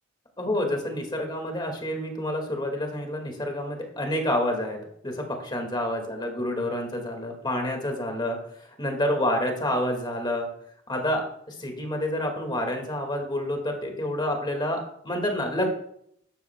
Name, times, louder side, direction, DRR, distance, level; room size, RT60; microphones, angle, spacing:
voice 1, 0.4-4.8 5.0-10.5 10.9-15.7, left 1 dB, 20° left, 3 dB, 2.0 m, -28 dB
12.5 x 12.0 x 2.3 m, 0.69 s
head